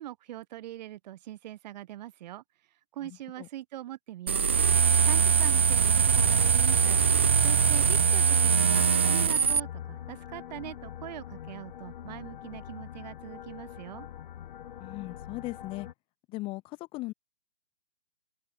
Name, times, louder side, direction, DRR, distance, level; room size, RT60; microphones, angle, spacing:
voice 1, 0.0-2.4 2.9-14.1, right 13 dB, 35° right, 5.1 m, -42 dB
voice 2, 3.0-3.5 7.9-8.0 14.8-15.9 16.3-17.1, left 20 dB, 15° left, 1.4 m, -38 dB
sound 1, 4.3-9.6, right 6 dB, 10° right, 0.4 m, -22 dB
sound 2, 6.1-15.9, left 10 dB, 45° left, 4.1 m, -43 dB
hypercardioid pair, 160°, 36 cm